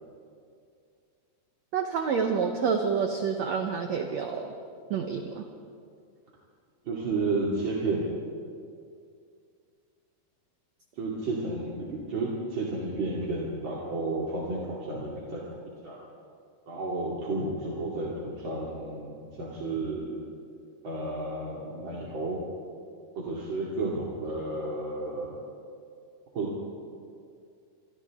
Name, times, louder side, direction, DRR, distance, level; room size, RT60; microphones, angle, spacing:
voice 1, 1.7-4.5 4.9-5.5, right 6 dB, 70° right, 4 dB, 1.7 m, -28 dB
voice 2, 6.8-8.1 11.0-15.4 15.8-16.0 16.7-20.2 20.8-22.4 23.2-25.4 26.3-26.5, right 2 dB, 35° right, -5 dB, 2.6 m, -32 dB
27.5 x 25.5 x 3.7 m, 2.3 s
omnidirectional pair, 4.5 m